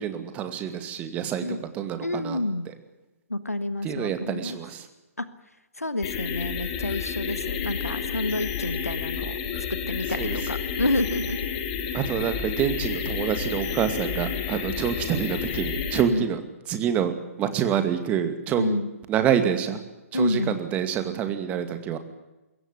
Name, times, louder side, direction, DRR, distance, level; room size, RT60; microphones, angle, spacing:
voice 1, 0.0-2.4 3.8-4.9 10.2-10.3 11.9-16.4 16.7-17.1 17.4-18.8 19.1-19.8 20.1-22.0, right 9 dB, 15° right, 9 dB, 2.2 m, -27 dB
voice 2, 2.0-2.7 3.3-4.6 5.2-5.3 5.8-9.4 9.9-11.4 11.9-12.0 16.1-16.3 18.6-18.9 20.1-20.6, left 2 dB, 80° left, 13 dB, 1.5 m, -29 dB
sound 1, 6.0-16.0, left 7 dB, 30° left, 3.4 m, -30 dB
22.5 x 17.0 x 9.9 m, 1.0 s
figure-of-eight pair, 130°, 8 cm